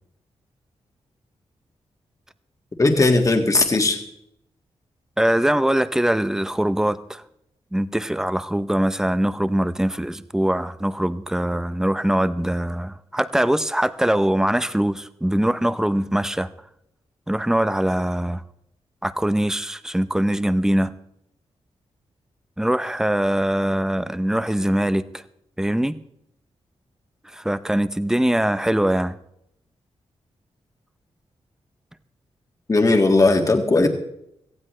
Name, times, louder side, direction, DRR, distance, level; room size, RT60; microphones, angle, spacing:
voice 1, 2.8-4.0 32.7-33.9, left 2 dB, 30° left, 4 dB, 1.9 m, -17 dB
voice 2, 5.2-7.2 7.7-16.5 17.3-18.4 19.0-20.9 22.6-25.2 25.6-26.0 27.3-29.1, right 1 dB, 5° right, 13 dB, 0.6 m, -22 dB
17.5 x 15.0 x 3.3 m, 0.78 s
wide cardioid pair, 115°, 11 cm